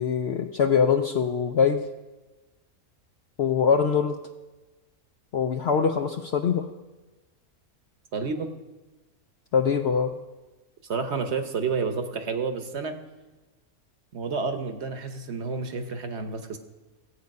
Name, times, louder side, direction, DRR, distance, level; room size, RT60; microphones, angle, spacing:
voice 1, 0.0-1.8 3.4-4.2 5.3-6.7 9.5-10.1, left 6 dB, 60° left, 6 dB, 0.7 m, -23 dB
voice 2, 8.1-8.5 10.9-13.0 14.1-16.6, right 4 dB, 55° right, 8 dB, 1.1 m, -30 dB
15.5 x 8.2 x 5.3 m, 1.2 s
omnidirectional pair, 1.5 m